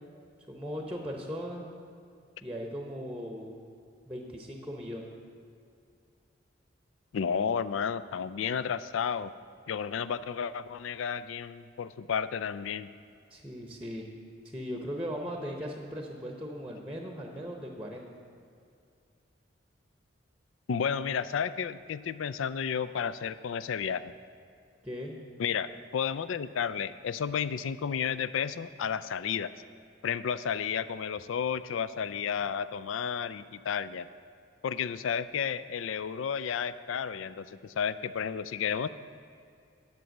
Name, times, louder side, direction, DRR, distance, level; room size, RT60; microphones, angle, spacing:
voice 1, 0.5-1.7 2.4-3.6 4.1-5.1 13.3-14.1 14.4-18.1 24.8-25.2, equal, 5° right, 1 dB, 0.9 m, -38 dB
voice 2, 7.1-9.3 9.7-12.9 20.7-24.1 25.4-29.5 30.0-34.1 34.6-38.9, left 7 dB, 90° left, 15 dB, 0.4 m, -32 dB
11.0 x 6.9 x 6.4 m, 2.4 s
head